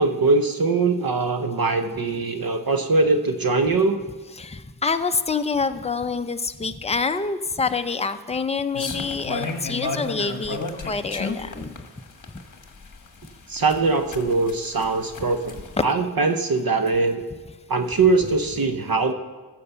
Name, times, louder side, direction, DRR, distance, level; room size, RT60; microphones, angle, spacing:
voice 1, 0.0-4.0 13.5-17.2 17.7-19.1, right 3 dB, 55° right, 7 dB, 0.8 m, -22 dB
voice 2, 4.4-10.6 10.9-11.7 15.8-15.9, left 4 dB, 15° left, 8 dB, 0.5 m, -26 dB
sound 1, 8.7-15.8, left 3 dB, 45° left, 1.3 m, -32 dB
15.0 x 6.7 x 6.9 m, 1.3 s
wide cardioid pair, 120°, 42 cm